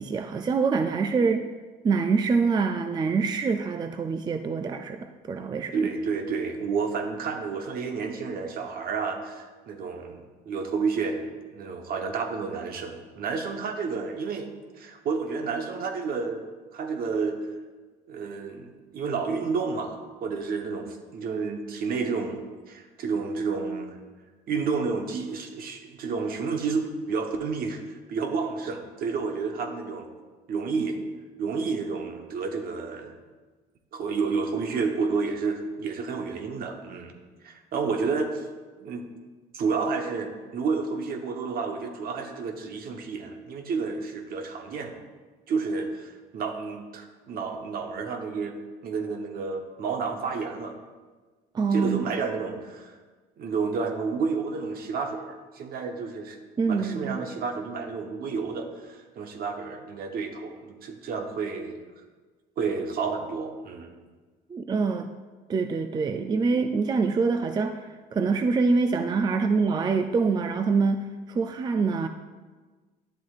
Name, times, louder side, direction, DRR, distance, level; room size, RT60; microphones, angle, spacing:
voice 1, 0.0-1.5 1.8-5.9 51.5-52.2 56.6-57.2 64.5-65.1 65.5-72.1, right 4 dB, 25° right, 7 dB, 0.3 m, -25 dB
voice 2, 5.7-14.5 14.8-16.5 16.7-17.4 18.1-22.4 22.7-24.0 24.5-30.1 30.5-31.0 31.4-33.2 33.9-37.2 37.4-38.5 38.8-39.1 39.5-45.0 45.5-50.8 51.7-53.0 53.4-56.4 56.7-61.8 62.6-63.9 66.2-66.4 69.3-69.4, right 5 dB, 60° right, 5 dB, 1.0 m, -30 dB
10.5 x 7.5 x 2.4 m, 1.4 s
cardioid pair, 110°, 17 cm